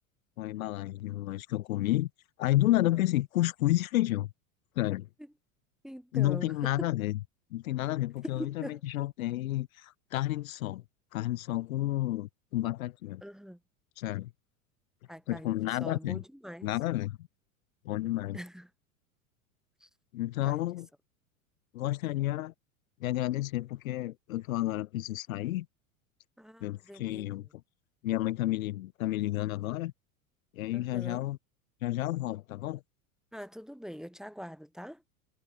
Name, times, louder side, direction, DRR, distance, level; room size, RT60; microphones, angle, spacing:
voice 1, 0.4-2.1 2.4-4.3 4.8-5.1 6.1-7.2 7.5-10.8 11.1-13.2 14.0-14.3 15.3-16.2 16.6-17.2 17.9-18.4 20.1-20.9 21.7-22.5 23.0-25.7 26.6-27.5 28.0-29.9 30.5-31.4 31.8-32.8, left 15 dB, 75° left, 0.5 m, -31 dB
voice 2, 5.8-6.7 8.3-8.8 13.2-13.6 15.1-16.7 18.3-18.7 19.8-19.9 20.4-20.7 26.4-27.3 30.7-31.3 33.3-35.0, equal, ahead, 0.9 m, -43 dB
hypercardioid pair, 90°, 42 cm